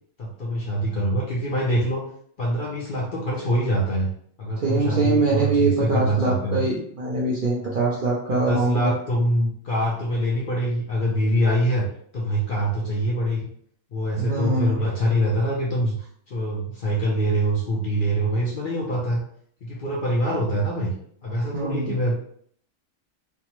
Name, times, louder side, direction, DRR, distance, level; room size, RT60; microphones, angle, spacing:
voice 1, 0.2-2.0 2.4-4.1 4.4-6.6 7.6-7.9 8.3-11.9 12.1-13.5 13.9-19.2 19.6-20.9 21.2-22.3, equal, 55° left, -4 dB, 0.6 m, -24 dB
voice 2, 4.6-8.9 14.2-14.8 21.5-22.0, right 3 dB, 55° right, -4 dB, 0.5 m, -23 dB
3.3 x 2.0 x 2.9 m, 0.63 s
omnidirectional pair, 1.4 m